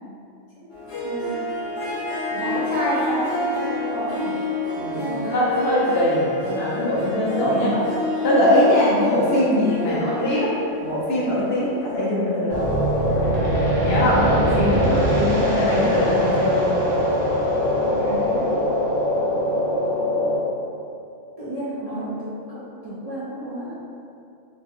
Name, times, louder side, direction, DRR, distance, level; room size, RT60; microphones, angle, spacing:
Harp, 0.7-11.9, left 2 dB, 85° left, 1.2 m, -29 dB
voice 1, 1.0-1.4 2.3-4.4 4.9-5.5 7.3-7.8 9.8-10.5 17.8-18.8 21.4-23.8, right 1 dB, 45° right, -11 dB, 0.5 m, -30 dB
voice 2, 4.7-7.8 8.2-10.5 10.8-12.7 13.8-16.6, left 1 dB, 60° left, -6 dB, 0.8 m, -21 dB
sound 1, 12.5-20.4, equal, 60° right, 1.0 m, -21 dB
3.2 x 2.1 x 3.5 m, 2.6 s
omnidirectional pair, 1.2 m